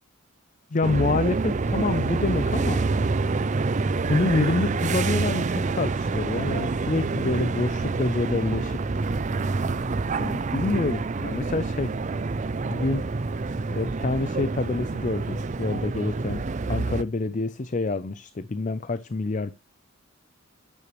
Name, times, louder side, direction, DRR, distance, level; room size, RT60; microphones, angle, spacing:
voice 1, 0.7-3.0 4.1-8.8 9.9-12.0 12.6-13.0 13.7-16.4 16.7-19.5, left 3 dB, 35° left, 0.5 m, -27 dB
sound 1, 0.8-17.0, right 3 dB, 35° right, 0.5 m, -27 dB
10.0 x 9.8 x 3.1 m
head